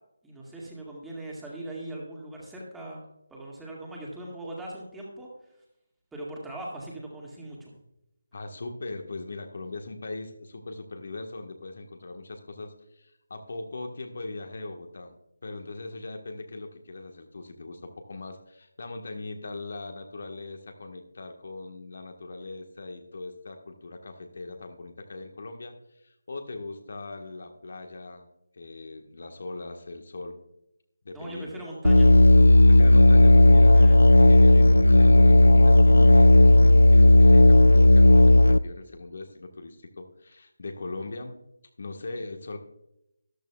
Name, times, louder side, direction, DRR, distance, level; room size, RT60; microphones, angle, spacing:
voice 1, 0.2-3.1 3.3-5.3 6.1-7.7 31.1-32.1 33.7-34.0, right 1 dB, 5° right, -4 dB, 2.0 m, -40 dB
voice 2, 8.3-15.2 15.4-28.3 28.5-30.4 31.0-31.6 32.7-41.4 41.8-42.6, left 2 dB, 50° left, 4 dB, 1.3 m, -40 dB
Musical instrument, 31.8-38.6, left 2 dB, 80° left, 0.4 m, -14 dB
13.5 x 12.5 x 2.3 m, 0.83 s
figure-of-eight pair, 155°, 0 cm